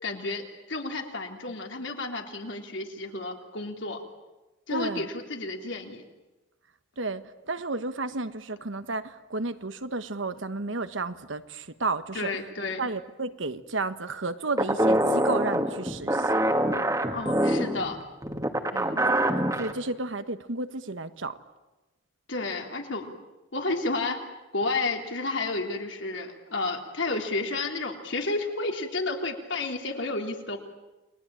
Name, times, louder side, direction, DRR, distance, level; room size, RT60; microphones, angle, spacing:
voice 1, 0.0-4.0 4.7-6.0 12.1-12.9 17.1-18.0 22.3-23.1 23.5-24.2 24.5-30.7, left 3 dB, 75° left, 3 dB, 3.5 m, -31 dB
voice 2, 4.7-5.1 7.0-12.3 12.8-16.4 18.7-19.2 19.6-21.4, right 3 dB, 85° right, 11 dB, 1.4 m, -32 dB
sound 1, 14.6-19.7, right 1 dB, 15° right, 1.7 m, -25 dB
30.0 x 21.5 x 9.0 m, 1.1 s
head